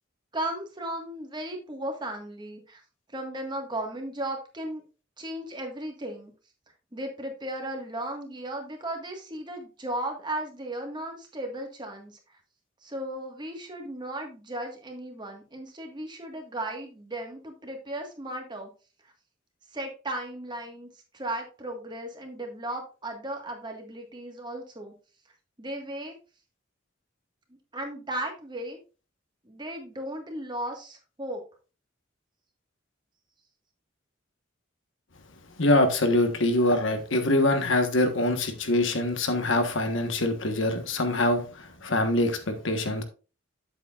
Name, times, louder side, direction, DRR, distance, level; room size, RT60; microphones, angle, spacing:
voice 1, 0.3-2.8 3.1-4.8 5.2-6.3 6.9-12.2 12.8-18.7 19.0-19.1 19.7-24.9 25.6-26.2 27.7-28.8 29.4-31.4, right 1 dB, 25° right, 1.7 m, -36 dB
voice 2, 35.6-43.0, left 1 dB, 75° left, 1.4 m, -24 dB
8.5 x 7.8 x 2.5 m
head